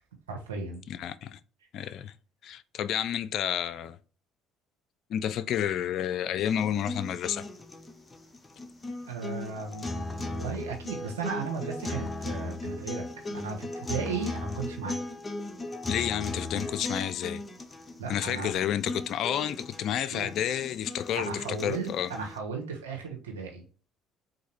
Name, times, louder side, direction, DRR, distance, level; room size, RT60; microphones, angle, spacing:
voice 1, 0.3-0.8 9.1-15.0 18.0-18.5 20.1-20.3 21.1-23.6, right 5 dB, 85° right, 1.1 m, -35 dB
voice 2, 0.9-1.4 1.7-2.1 2.4-4.0 5.1-7.5 15.9-17.4 18.1-22.1, left 10 dB, 60° left, 0.4 m, -30 dB
sound 1, 6.4-22.4, left 2 dB, 20° left, 0.7 m, -38 dB
4.0 x 2.7 x 4.4 m
hypercardioid pair, 60°, 0 cm